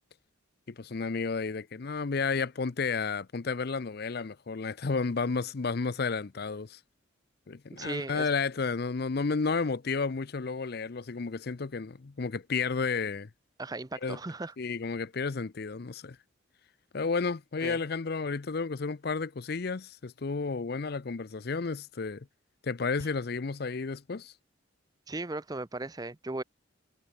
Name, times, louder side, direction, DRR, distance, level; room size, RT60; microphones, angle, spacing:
voice 1, 0.7-6.8 7.5-13.3 14.0-14.2 14.6-16.2 16.9-22.3 22.6-24.3, left 4 dB, 50° left, 0.6 m, -32 dB
voice 2, 7.8-8.3 13.6-14.5 17.6-17.8 25.1-26.4, right 2 dB, 20° right, 0.6 m, -37 dB
head